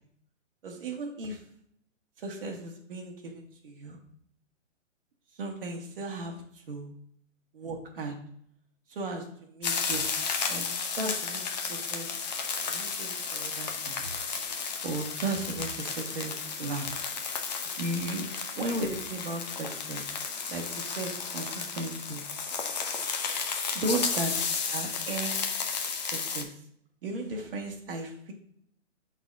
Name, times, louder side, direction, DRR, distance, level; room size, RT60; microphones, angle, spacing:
voice 1, 0.6-1.4 2.2-4.0 5.4-6.9 7.5-8.1 8.9-10.0 10.5-10.7 11.0-12.1 12.7-14.1 14.8-16.9 17.8-18.3 18.5-20.0 20.5-22.2 23.7-24.3 24.7-25.4 26.0-26.5 27.0-28.3, right 2 dB, 45° right, 1 dB, 1.7 m, -35 dB
sound 1, 9.6-26.4, left 5 dB, 35° left, 0.7 m, -33 dB
11.0 x 4.1 x 2.6 m, 0.68 s
hypercardioid pair, 165°, 38 cm